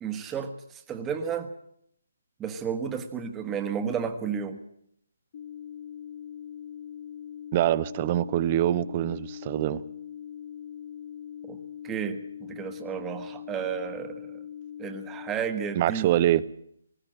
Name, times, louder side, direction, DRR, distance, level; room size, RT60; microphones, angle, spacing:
voice 1, 0.0-1.5 2.4-4.6 11.4-11.6 11.8-14.4 14.8-16.1, right 7 dB, 10° right, 7 dB, 1.3 m, -32 dB
sound 1, 5.3-15.3, left 9 dB, 40° left, 0.7 m, -41 dB
voice 2, 7.5-9.8 15.8-16.4, right 12 dB, 30° right, 18 dB, 0.7 m, -24 dB
19.5 x 15.5 x 8.7 m, 0.70 s
hypercardioid pair, 160°, 0 cm